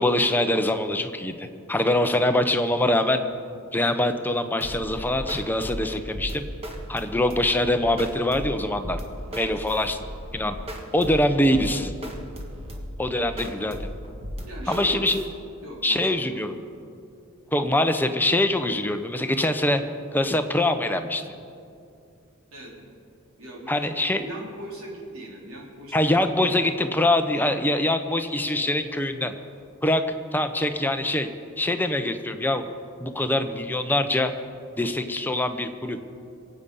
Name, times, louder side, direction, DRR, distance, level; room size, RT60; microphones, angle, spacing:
voice 1, 0.0-3.2 3.7-6.5 6.9-9.0 9.3-10.0 10.3-10.6 10.9-11.9 13.0-13.9 14.7-15.2 15.8-16.5 17.5-19.8 20.1-21.2 23.7-24.3 25.9-29.3 29.8-31.3 31.6-32.6 33.0-34.3 34.8-36.0, left 1 dB, 10° left, 7 dB, 0.7 m, -24 dB
sound 1, 4.6-15.3, equal, 30° right, 1.7 m, -36 dB
voice 2, 14.5-15.0 15.6-16.4 22.5-22.9 23.4-26.8, right 1 dB, 70° right, -3 dB, 3.5 m, -40 dB
23.5 x 8.6 x 5.4 m, 2.4 s
head